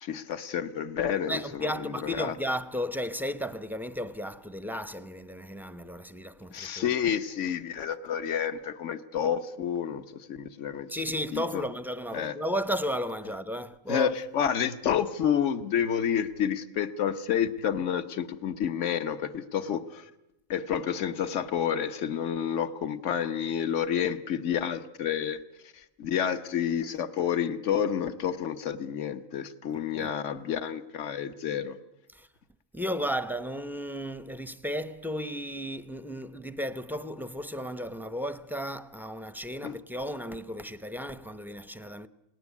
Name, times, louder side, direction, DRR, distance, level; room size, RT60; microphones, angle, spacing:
voice 1, 0.0-2.3 6.5-10.0 10.3-10.9 11.3-11.6 12.1-12.3 13.9-20.1 20.5-25.4 26.0-31.8 39.6-39.7, left 8 dB, 60° left, 1.4 m, -29 dB
voice 2, 1.3-6.9 10.9-14.1 29.9-30.1 32.1-32.3 32.7-42.1, equal, ahead, 0.6 m, -34 dB
29.0 x 18.5 x 8.3 m
omnidirectional pair, 1.4 m